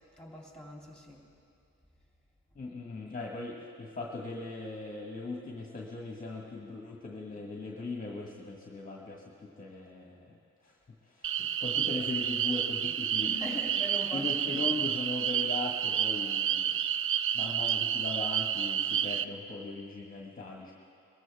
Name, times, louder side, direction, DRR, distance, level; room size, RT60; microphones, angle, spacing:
voice 1, 0.2-1.2 12.8-14.3, left 1 dB, 5° left, -2 dB, 3.0 m, -41 dB
voice 2, 2.5-10.7 11.0-13.6 14.1-16.8 17.3-20.7, left 3 dB, 25° left, -2 dB, 1.6 m, -39 dB
sound 1, 11.2-19.2, right 9 dB, 45° right, 0.4 m, -30 dB
22.5 x 14.0 x 3.5 m, 2.4 s
cardioid pair, 90°, 31 cm